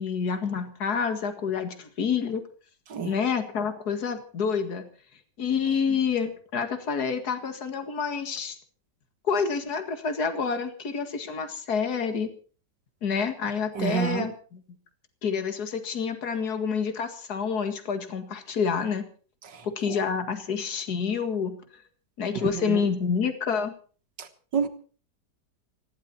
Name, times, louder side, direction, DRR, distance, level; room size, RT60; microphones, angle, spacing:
voice 1, 0.0-2.4 3.0-4.9 5.4-8.6 9.3-12.3 13.0-14.6 15.2-19.1 19.6-21.6 22.2-23.7, left 6 dB, 65° left, 2.4 m, -28 dB
voice 2, 13.7-14.3 19.5-20.0 22.5-22.8 24.2-24.3 24.5-24.7, right 7 dB, 85° right, 2.3 m, -29 dB
19.5 x 16.0 x 4.3 m
omnidirectional pair, 1.9 m